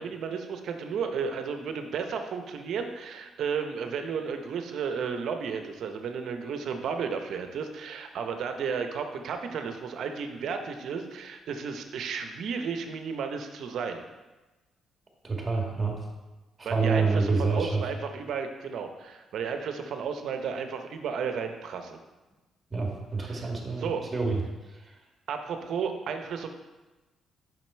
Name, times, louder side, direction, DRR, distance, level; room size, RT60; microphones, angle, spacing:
voice 1, 0.0-14.0 16.6-22.0 23.2-23.5 23.8-24.1 25.3-26.5, right 6 dB, 70° right, 6 dB, 0.7 m, -33 dB
voice 2, 15.2-16.0 16.6-17.8 22.7-24.4, right 4 dB, 25° right, 1 dB, 1.7 m, -27 dB
5.9 x 5.3 x 4.4 m, 1.1 s
cardioid pair, 75°, 0 cm